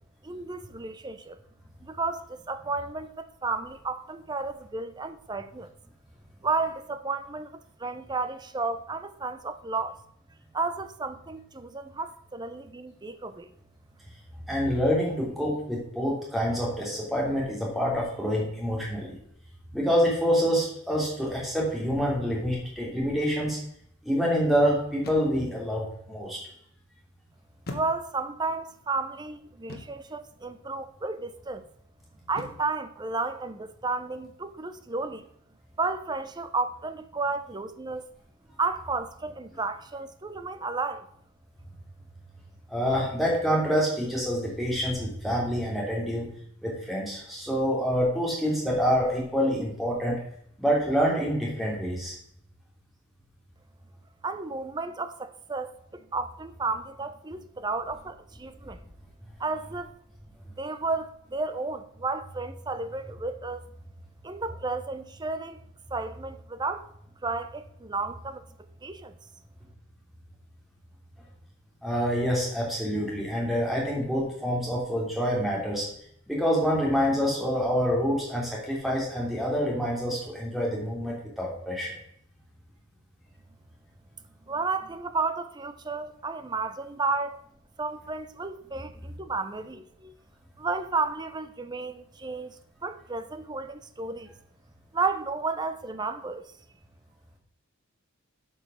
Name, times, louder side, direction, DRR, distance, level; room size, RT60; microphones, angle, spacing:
voice 1, 0.2-1.4 1.8-5.7 6.4-10.0 10.5-13.5 27.7-31.6 32.3-35.3 35.8-38.0 38.6-41.1 54.2-58.8 59.4-59.9 60.6-63.6 64.2-65.6 65.9-66.9 67.2-68.4 68.8-69.2 84.5-87.4 87.8-90.1 90.6-94.3 94.9-96.5, right 3 dB, 20° right, 0.6 m, -32 dB
voice 2, 14.5-19.1 19.7-23.6 24.0-26.4 42.7-46.3 46.6-50.2 50.6-52.1 71.8-75.9 76.3-82.0, equal, ahead, 2.9 m, -27 dB
sound 1, 25.0-25.6 27.7-28.4 29.7-30.1 32.3-32.8, left 2 dB, 45° left, 1.4 m, -42 dB
8.6 x 5.5 x 6.3 m
head